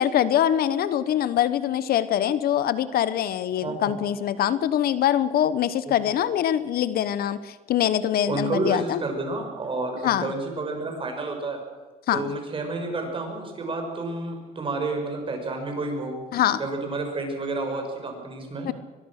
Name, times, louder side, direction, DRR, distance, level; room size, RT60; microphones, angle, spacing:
voice 1, 0.0-9.0 10.0-10.3 12.1-12.3 16.3-16.6 18.6-18.7, left 10 dB, 65° left, 15 dB, 1.0 m, -23 dB
voice 2, 3.6-3.9 5.9-6.0 8.3-11.6 12.1-16.2 16.6-18.7, right 2 dB, 30° right, 3 dB, 6.5 m, -30 dB
23.0 x 22.0 x 6.6 m, 1.3 s
cardioid pair, 110°, 17 cm